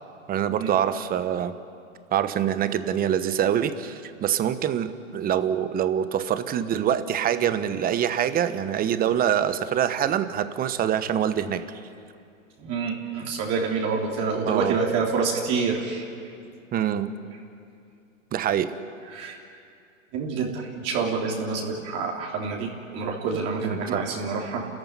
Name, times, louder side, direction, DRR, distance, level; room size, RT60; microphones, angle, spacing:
voice 1, 0.3-1.5 2.1-11.6 14.4-14.8 16.7-17.1 18.3-18.7 23.6-24.0, right 9 dB, 20° right, 12 dB, 1.1 m, -25 dB
voice 2, 12.6-16.0 19.1-19.4 20.1-24.7, right 5 dB, 40° right, -1 dB, 3.4 m, -27 dB
30.0 x 14.5 x 10.0 m, 2.5 s
hypercardioid pair, 115°, 39 cm